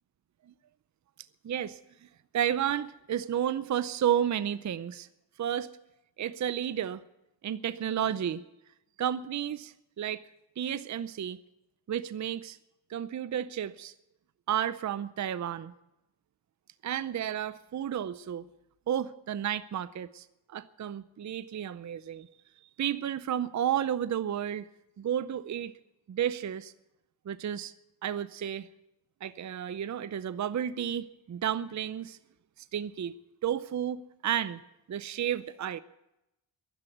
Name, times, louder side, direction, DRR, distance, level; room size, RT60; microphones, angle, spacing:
voice 1, 1.4-2.1 2.3-5.1 5.4-5.7 6.2-7.0 7.4-8.4 9.0-10.2 10.6-11.4 11.9-12.6 12.9-13.9 14.5-15.7 16.8-18.5 18.9-22.3 22.8-24.7 25.0-25.7 26.1-26.7 27.3-27.7 28.0-28.7 29.2-32.2 32.7-33.2 33.4-34.6 34.9-35.8, right 10 dB, 40° right, 14 dB, 0.6 m, -32 dB
15.5 x 11.5 x 8.0 m, 0.88 s
cardioid pair, 95°, 45 cm